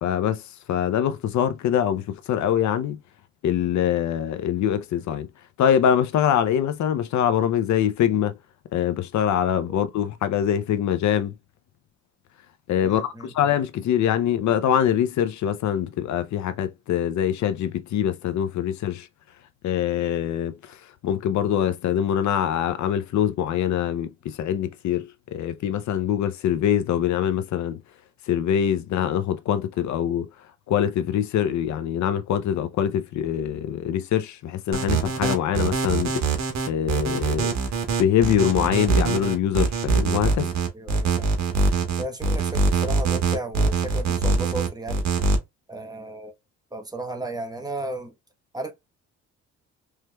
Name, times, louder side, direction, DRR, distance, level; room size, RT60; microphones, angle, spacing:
voice 1, 0.0-0.4 0.7-3.0 3.4-5.3 5.6-8.3 8.7-11.3 12.7-19.1 19.6-20.8 21.0-27.8 28.3-30.3 30.7-36.2 36.7-37.5 38.0-40.5, left 9 dB, 70° left, 0.6 m, -24 dB
voice 2, 12.8-13.3 40.7-41.4 42.0-45.1 45.7-46.3 46.7-48.1 48.5-48.7, right 1 dB, 15° right, 1.0 m, -34 dB
sound 1, 34.7-45.4, right 4 dB, 65° right, 1.3 m, -23 dB
4.5 x 3.2 x 2.2 m
cardioid pair, 90°, 30 cm